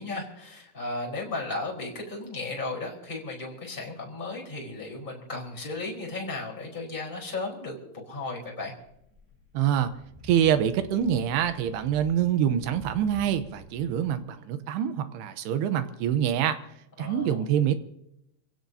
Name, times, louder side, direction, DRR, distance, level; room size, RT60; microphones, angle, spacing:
voice 1, 0.0-8.7 17.0-17.4, left 3 dB, 10° left, -1 dB, 4.0 m, -35 dB
sound 1, 8.8-14.2, left 2 dB, 5° right, 3.2 m, -49 dB
voice 2, 9.5-9.9 10.2-16.6 17.0-17.8, right 9 dB, 80° right, 10 dB, 2.9 m, -25 dB
26.5 x 16.5 x 2.8 m, 0.80 s
omnidirectional pair, 4.8 m